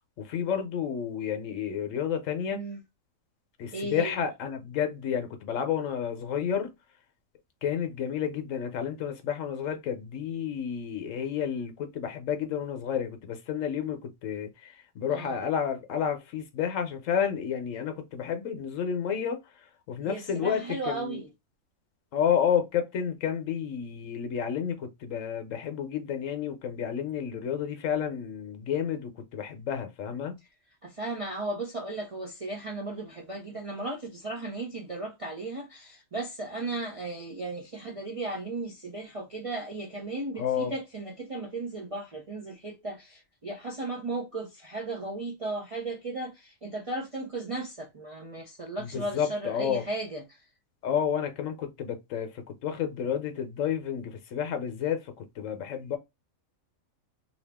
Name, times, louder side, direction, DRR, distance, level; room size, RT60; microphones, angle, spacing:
voice 1, 0.2-2.6 3.6-6.7 7.6-19.4 19.9-21.2 22.1-30.4 40.4-40.7 48.8-49.8 50.8-56.0, left 8 dB, 70° left, 1.0 m, -31 dB
voice 2, 3.7-4.2 15.1-15.4 20.0-21.3 30.8-50.4, right 2 dB, 45° right, 0.4 m, -36 dB
2.8 x 2.4 x 3.4 m
omnidirectional pair, 1.4 m